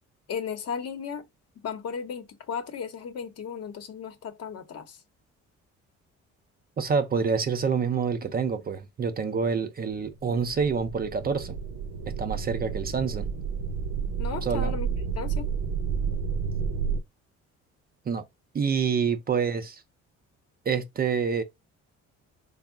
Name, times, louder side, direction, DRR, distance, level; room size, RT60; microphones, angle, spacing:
voice 1, 0.3-1.3 1.6-5.0 14.2-15.5 19.3-19.5, left 6 dB, 55° left, 0.8 m, -35 dB
voice 2, 6.8-11.6 12.1-13.3 14.4-14.7 18.1-18.2 18.5-19.8 20.7-21.4, right 6 dB, 30° right, 0.5 m, -27 dB
sound 1, 10.4-17.0, right 6 dB, 85° right, 0.6 m, -30 dB
3.5 x 2.0 x 3.5 m
cardioid pair, 85°, 29 cm